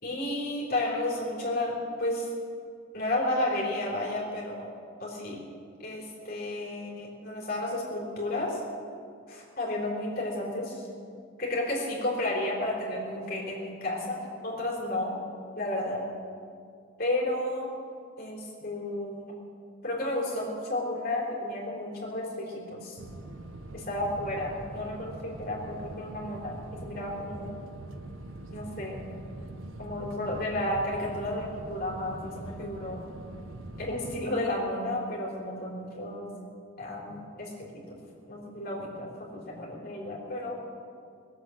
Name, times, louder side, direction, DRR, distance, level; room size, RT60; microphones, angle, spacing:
voice 1, 0.0-2.3 2.9-4.7 5.0-5.4 5.8-8.6 9.3-10.8 11.4-15.2 15.6-16.1 17.0-17.7 18.2-19.3 19.8-23.0 23.7-27.6 28.5-29.1 29.8-33.0 33.8-36.3 36.8-38.0 38.3-40.6, left 1 dB, 45° left, -3 dB, 3.8 m, -32 dB
sound 1, 23.0-34.3, right 1 dB, 75° right, 0.9 m, -43 dB
20.5 x 8.1 x 7.8 m, 2.3 s
head